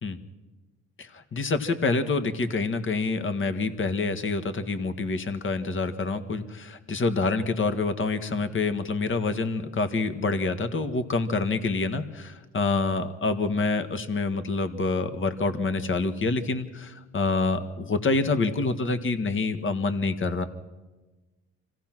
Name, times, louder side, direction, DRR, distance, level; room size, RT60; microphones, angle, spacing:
voice 1, 1.0-20.4, left 3 dB, 40° left, 10 dB, 1.6 m, -27 dB
26.0 x 16.5 x 6.1 m, 1.2 s
cardioid pair, 90°, 30 cm